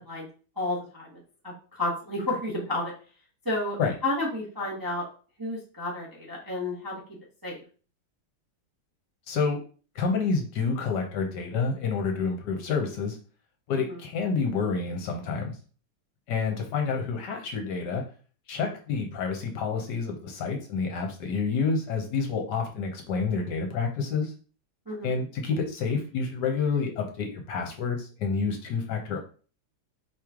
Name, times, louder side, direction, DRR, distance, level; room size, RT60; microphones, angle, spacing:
voice 1, 0.6-2.9 3.4-3.8 4.0-5.0 5.4-6.9 7.4-7.6 13.7-14.0 24.9-25.2, left 2 dB, 15° right, -5 dB, 0.9 m, -31 dB
voice 2, 9.3-9.6 9.9-13.2 13.7-15.5 16.3-18.0 18.5-24.3 25.0-29.2, left 5 dB, 65° left, 3 dB, 1.3 m, -28 dB
4.8 x 3.1 x 3.6 m, 0.39 s
omnidirectional pair, 2.1 m